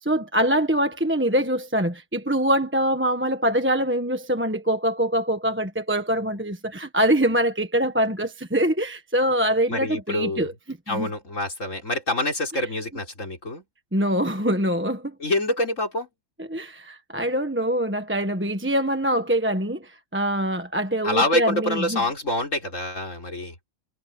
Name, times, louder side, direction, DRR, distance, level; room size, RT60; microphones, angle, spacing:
voice 1, 0.0-11.1 13.9-15.1 16.5-22.0, right 1 dB, 10° right, 1.3 m, -24 dB
voice 2, 9.7-10.5 10.9-13.6 15.2-16.1 21.0-23.5, left 1 dB, 55° left, 4.9 m, -26 dB
omnidirectional pair, 1.6 m